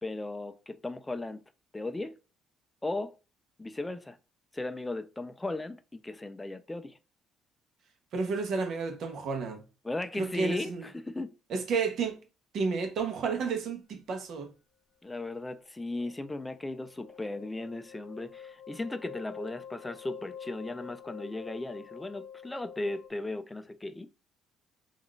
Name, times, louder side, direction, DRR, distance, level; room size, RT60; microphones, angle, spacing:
voice 1, 0.0-1.4 1.7-2.2 2.8-3.2 3.6-4.2 4.5-7.0 9.8-11.3 15.0-24.1, left 2 dB, 10° left, 0.3 m, -36 dB
voice 2, 8.1-9.6 10.2-10.9 11.5-12.2 12.5-14.5, right 4 dB, 60° right, 0.7 m, -31 dB
sound 1, 15.7-23.1, left 8 dB, 80° left, 0.7 m, -48 dB
3.6 x 2.4 x 2.3 m
cardioid pair, 115°, 0 cm